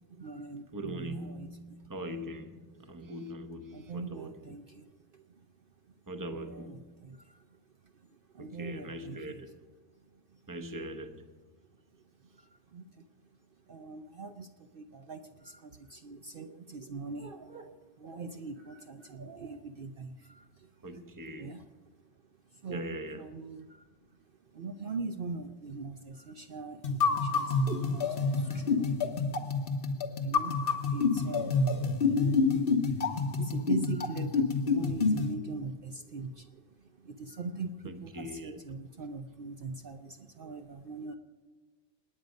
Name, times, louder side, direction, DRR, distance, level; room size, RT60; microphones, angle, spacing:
voice 1, 0.1-1.9 3.7-4.8 5.1-5.2 6.3-7.4 8.3-9.4 12.3-13.1 13.7-21.1 21.4-21.6 22.5-23.9 24.5-29.0 30.2-32.0 33.0-41.1, right 4 dB, 55° right, 0.8 m, -42 dB
voice 2, 0.7-4.6 6.1-7.0 8.4-9.6 10.5-11.3 20.8-21.6 22.7-23.3 37.8-38.6, right 1 dB, 20° right, 0.9 m, -41 dB
sound 1, 26.8-35.3, left 4 dB, 55° left, 1.2 m, -28 dB
27.0 x 9.4 x 5.3 m
omnidirectional pair, 1.2 m